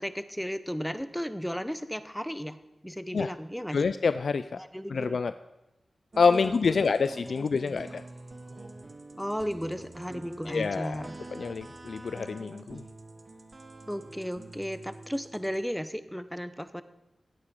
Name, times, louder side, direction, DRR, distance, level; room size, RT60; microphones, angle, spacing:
voice 1, 0.0-2.6 2.8-3.8 4.6-5.2 6.3-6.9 7.4-7.8 9.2-11.2 13.9-16.8, equal, ahead, 12 dB, 0.7 m, -35 dB
voice 2, 3.7-4.6 4.9-5.3 6.2-8.0 10.5-11.0 11.3-12.8, left 5 dB, 75° left, 12 dB, 0.3 m, -27 dB
sound 1, 6.1-15.6, right 2 dB, 40° right, 1.3 m, -46 dB
16.0 x 8.5 x 5.3 m, 0.97 s
wide cardioid pair, 80°, 0 cm